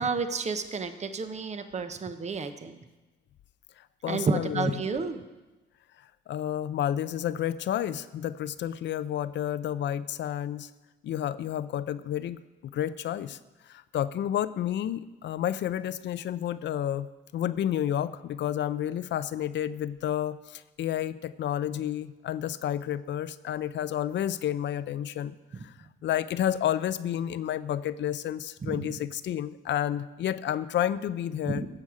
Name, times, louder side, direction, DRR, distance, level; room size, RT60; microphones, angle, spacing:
voice 1, 0.0-2.8 4.0-5.2 28.6-29.0 31.4-31.7, right 4 dB, 35° right, 9 dB, 0.9 m, -31 dB
voice 2, 4.0-4.7 6.3-10.7 11.0-13.4 13.7-17.1 17.3-25.4 25.6-25.7 26.0-31.6, left 10 dB, 65° left, 14 dB, 0.5 m, -30 dB
16.0 x 7.1 x 4.9 m, 1.1 s
cardioid pair, 90°, 20 cm